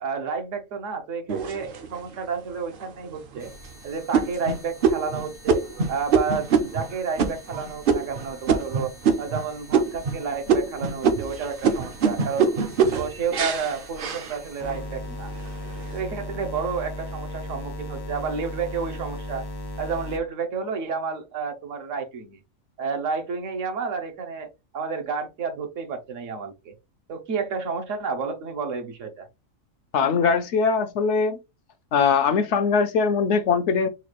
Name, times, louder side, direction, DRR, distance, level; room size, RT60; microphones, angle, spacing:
voice 1, 0.0-3.5 3.8-5.6 5.9-8.9 9.2-12.5 12.9-15.3 15.9-19.4 19.8-22.4 22.8-26.7 27.1-29.3, right 5 dB, 70° right, 1.1 m, -30 dB
sound 1, 1.3-2.1 2.7-2.8 3.3-3.7 4.1-9.4 9.7-10.2 10.5-14.8 15.3-15.8, right 6 dB, 55° right, 0.7 m, -24 dB
sound 2, 3.4-20.2, left 1 dB, 35° left, 0.4 m, -39 dB
voice 2, 29.9-31.4 31.9-33.9, left 5 dB, 70° left, 0.8 m, -21 dB
4.2 x 2.3 x 2.9 m
omnidirectional pair, 1.4 m